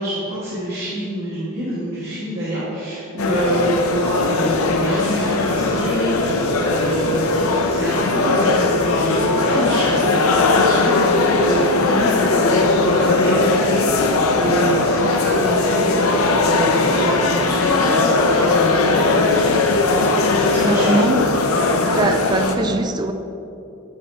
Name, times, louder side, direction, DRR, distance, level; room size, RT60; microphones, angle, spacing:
voice 1, 0.0-19.6 19.9-21.0 21.6-22.1 22.5-22.7, right 1 dB, 50° right, -11 dB, 1.7 m, -26 dB
sound 1, 3.2-22.5, left 3 dB, 85° left, 0.6 m, -18 dB
voice 2, 20.6-21.3 22.0-23.1, right 2 dB, 20° right, 7 dB, 0.3 m, -21 dB
10.5 x 5.2 x 3.3 m, 2.8 s
head